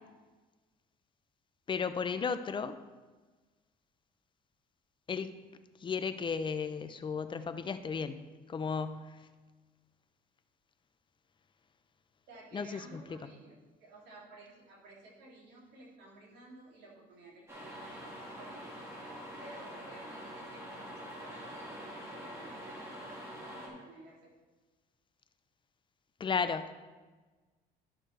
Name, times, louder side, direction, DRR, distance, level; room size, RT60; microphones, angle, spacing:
voice 1, 1.7-2.8 5.1-5.4 5.8-9.2 12.5-13.0 26.2-26.7, left 5 dB, 30° left, 11 dB, 0.5 m, -34 dB
voice 2, 12.3-18.7 19.4-24.3, right 2 dB, 80° right, -4 dB, 2.8 m, -54 dB
sound 1, 17.5-23.7, equal, 15° right, 2.5 m, -45 dB
12.0 x 6.3 x 3.3 m, 1.3 s
cardioid pair, 110°, 17 cm